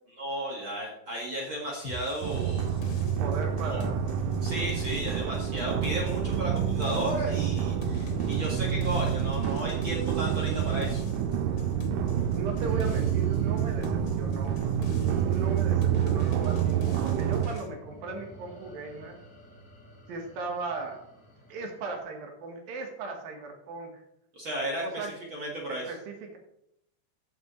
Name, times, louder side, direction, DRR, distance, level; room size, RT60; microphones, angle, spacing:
voice 1, 0.2-2.7 3.6-3.8 4.4-11.0 24.3-25.9, right 1 dB, 45° right, -3 dB, 1.8 m, -34 dB
sound 1, 1.8-17.7, left 3 dB, 80° left, 3.3 m, -43 dB
sound 2, 2.2-17.5, right 9 dB, 85° right, 2.0 m, -28 dB
voice 2, 3.2-4.0 12.3-14.6 15.2-19.2 20.1-21.0 21.5-24.0 24.8-25.1 25.7-26.4, right 3 dB, 65° right, 2 dB, 2.9 m, -37 dB
sound 3, 12.3-22.0, equal, 30° left, 1.5 m, -46 dB
13.5 x 7.0 x 3.2 m, 0.78 s
omnidirectional pair, 4.8 m